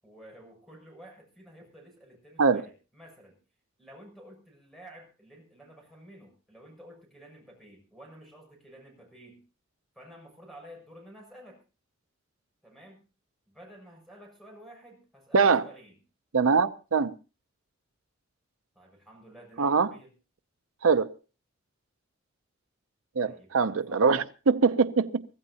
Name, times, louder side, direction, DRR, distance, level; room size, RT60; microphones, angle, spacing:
voice 1, 0.0-3.4 3.8-9.4 10.0-11.6 12.6-13.0 13.5-16.0 18.7-20.1 23.2-24.1, right 1 dB, ahead, 7.1 m, -51 dB
voice 2, 16.3-17.1 19.6-19.9 20.8-21.1 23.2-25.3, right 5 dB, 85° right, 0.6 m, -23 dB
23.5 x 15.5 x 2.8 m
head